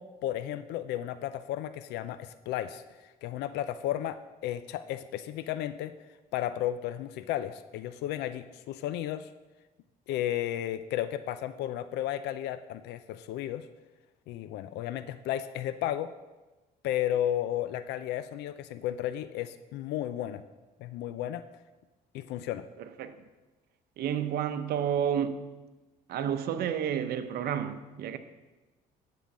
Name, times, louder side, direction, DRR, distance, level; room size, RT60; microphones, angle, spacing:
voice 1, 0.0-5.9 6.3-9.3 10.1-13.7 14.3-16.1 16.8-20.4 20.8-21.5 22.1-22.7, left 12 dB, 80° left, 0.4 m, -33 dB
voice 2, 22.8-23.1 24.0-25.4 26.1-28.2, right 9 dB, 65° right, 0.8 m, -30 dB
11.0 x 3.9 x 7.1 m
cardioid pair, 110°, 17 cm